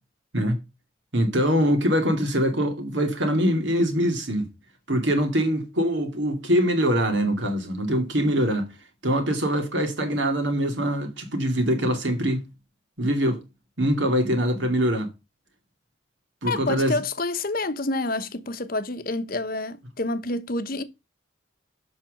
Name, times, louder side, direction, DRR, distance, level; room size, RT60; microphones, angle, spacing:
voice 1, 1.1-4.5 4.9-8.7 9.0-12.5 13.0-13.4 13.8-15.1 16.4-17.0, equal, 65° right, 2.4 m, -23 dB
voice 2, 16.5-20.8, left 2 dB, 45° left, 1.0 m, -28 dB
7.6 x 5.9 x 6.4 m
head